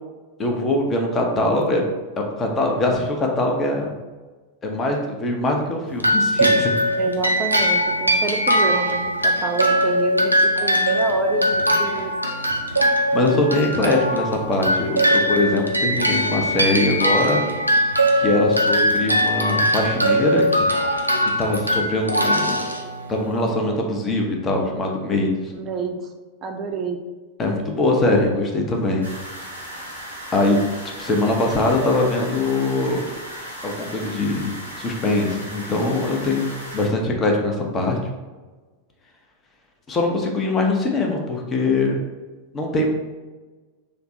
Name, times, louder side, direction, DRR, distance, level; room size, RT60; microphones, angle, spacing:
voice 1, 0.4-1.9 2.2-3.9 4.6-6.9 13.1-17.4 18.2-20.7 21.4-22.6 23.1-25.5 27.4-29.1 30.3-30.6 31.0-33.1 33.6-38.0 39.9-42.0 42.5-42.9, left 2 dB, 20° left, 1 dB, 0.6 m, -22 dB
sound 1, 6.0-23.4, equal, 90° right, 0.4 m, -21 dB
voice 2, 6.9-10.3 10.6-12.1 25.5-26.1 26.4-27.0 27.8-28.4, right 4 dB, 30° right, 4 dB, 0.4 m, -28 dB
sound 2, 29.0-36.9, equal, 90° left, 0.8 m, -36 dB
3.3 x 2.1 x 4.0 m, 1.3 s
figure-of-eight pair, 90°, 0 cm